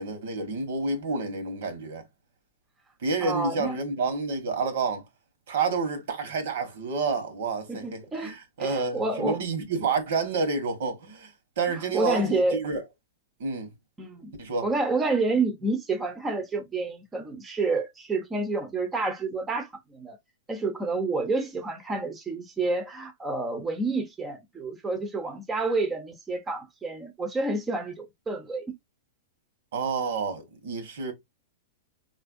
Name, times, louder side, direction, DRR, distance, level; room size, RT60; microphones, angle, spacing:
voice 1, 0.0-2.1 3.0-5.0 5.5-12.8 13.4-13.7 14.4-14.6 29.7-31.1, right 4 dB, 70° right, 1.2 m, -29 dB
voice 2, 3.2-3.8 7.7-8.3 8.6-9.4 11.7-12.6 14.0-14.3 14.6-20.2 20.5-28.7, right 3 dB, 15° right, 0.6 m, -29 dB
4.1 x 2.5 x 2.5 m
hypercardioid pair, 140°, 0 cm